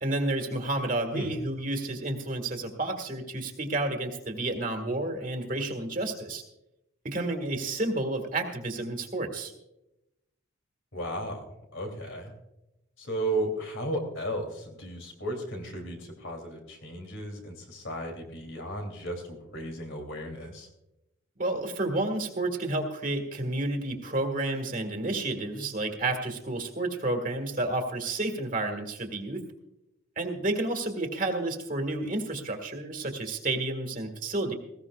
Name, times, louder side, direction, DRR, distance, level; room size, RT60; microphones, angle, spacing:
voice 1, 0.0-6.4 7.0-9.5 21.4-29.4 30.2-34.5, right 2 dB, 40° right, 5 dB, 1.8 m, -30 dB
voice 2, 10.9-11.4 11.7-12.3 13.0-20.7, right 1 dB, 70° left, 3 dB, 3.1 m, -34 dB
19.5 x 16.0 x 2.4 m, 0.90 s
head